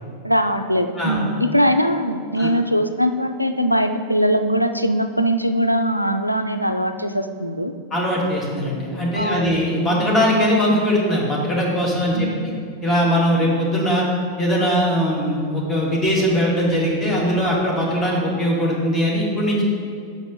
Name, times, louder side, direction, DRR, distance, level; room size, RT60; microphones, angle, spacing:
voice 1, 0.2-7.7 9.1-9.5 12.1-12.4, equal, 90° right, 8 dB, 0.3 m, -21 dB
voice 2, 7.9-12.5 12.8-14.1 14.4-19.6, equal, 20° left, -3 dB, 2.0 m, -20 dB
5.3 x 5.2 x 6.4 m, 2.2 s
figure-of-eight pair, 90°, 0 cm